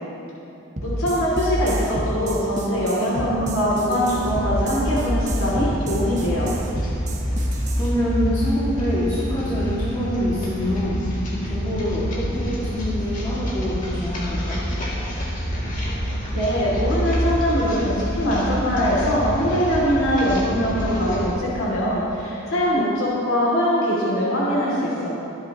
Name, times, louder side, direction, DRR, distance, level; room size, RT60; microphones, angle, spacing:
voice 1, 0.8-6.5 16.3-25.1, equal, 85° left, -7 dB, 3.0 m, -22 dB
sound 1, 0.8-7.9, equal, 35° right, 1.2 m, -28 dB
sound 2, 4.0-21.3, equal, 40° left, 2.6 m, -27 dB
voice 2, 7.8-11.0 11.5-14.6, equal, 20° left, -9 dB, 2.3 m, -25 dB
24.5 x 10.0 x 3.1 m, 2.9 s
head